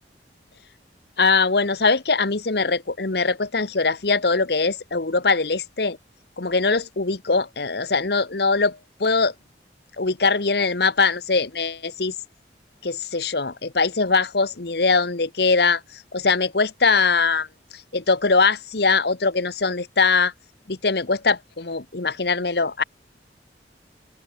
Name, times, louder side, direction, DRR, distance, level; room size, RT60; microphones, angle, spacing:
voice 1, 1.2-6.0 6.4-9.3 10.0-12.1 12.8-15.8 16.1-17.5 17.9-20.3 20.7-22.8, left 4 dB, 60° left, 1.2 m, -21 dB
head